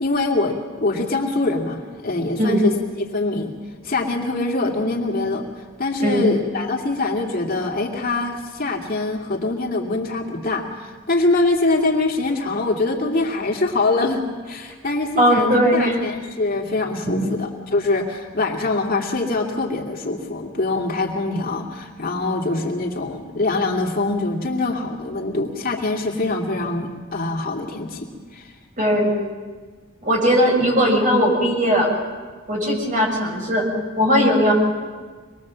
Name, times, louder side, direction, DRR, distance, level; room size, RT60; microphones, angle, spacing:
voice 1, 0.0-2.7 3.1-3.5 3.8-28.5, left 2 dB, 45° left, 0 dB, 2.6 m, -24 dB
voice 2, 15.2-16.0 17.1-17.3 28.8-29.1 30.0-31.9 32.5-33.7 34.0-34.5, equal, 40° right, 0 dB, 6.5 m, -18 dB
25.5 x 21.0 x 7.6 m, 1.4 s
head